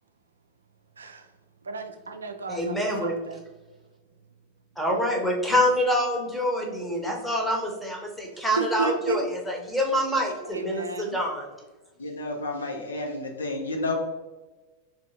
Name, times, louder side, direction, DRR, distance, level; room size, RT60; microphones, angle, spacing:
voice 1, 1.0-1.3 1.6-3.4 8.6-9.3 10.4-11.2, right 3 dB, 75° right, 6 dB, 0.4 m, -32 dB
voice 2, 2.5-3.1 4.8-11.4, equal, ahead, -1 dB, 0.9 m, -26 dB
voice 3, 12.0-14.0, left 2 dB, 70° left, 2 dB, 0.7 m, -31 dB
3.9 x 3.3 x 2.8 m, 1.2 s
figure-of-eight pair, 90°, 0 cm